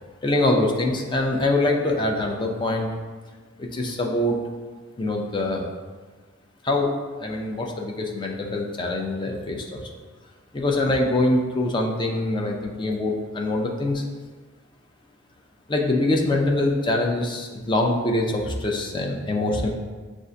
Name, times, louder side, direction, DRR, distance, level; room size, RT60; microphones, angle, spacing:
voice 1, 0.2-2.9 3.6-4.4 5.0-5.7 6.6-9.9 10.5-14.0 15.7-19.7, left 2 dB, 25° left, 1 dB, 0.4 m, -24 dB
6.6 x 2.4 x 2.6 m, 1.4 s
head